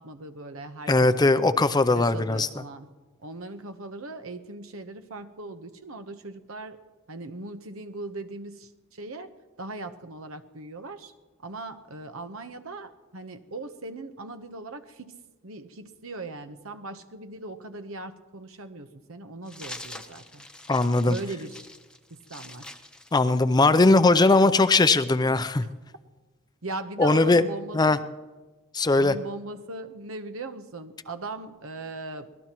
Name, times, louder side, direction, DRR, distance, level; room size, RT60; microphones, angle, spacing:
voice 1, 0.0-1.4 1.9-2.9 3.2-6.8 7.1-9.3 9.6-11.1 11.4-15.2 15.4-20.4 21.0-21.7 22.1-22.8 26.6-28.0 28.9-32.3, right 2 dB, 85° right, 9 dB, 1.0 m, -39 dB
voice 2, 0.9-2.5 20.7-21.1 23.1-25.6 27.0-27.4 27.7-28.0 28.7-29.1, left 3 dB, 20° left, 12 dB, 0.5 m, -19 dB
sound 1, 19.5-23.9, left 2 dB, 5° left, 0.9 m, -44 dB
24.5 x 18.5 x 3.0 m, 1.3 s
head